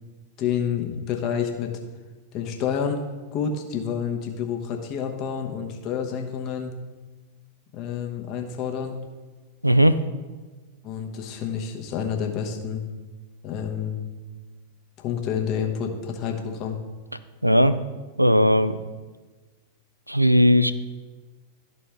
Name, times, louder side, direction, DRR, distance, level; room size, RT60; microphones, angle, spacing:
voice 1, 0.4-1.7 2.3-3.0 3.3-6.7 7.7-9.0 10.8-12.8 13.4-14.0 15.0-16.8, left 7 dB, 40° left, 3 dB, 1.0 m, -29 dB
voice 2, 9.6-10.0 17.4-17.8 18.2-18.8 20.1-20.7, equal, 90° right, 13 dB, 0.3 m, -17 dB
12.5 x 4.2 x 3.4 m, 1.3 s
figure-of-eight pair, 90°, 0 cm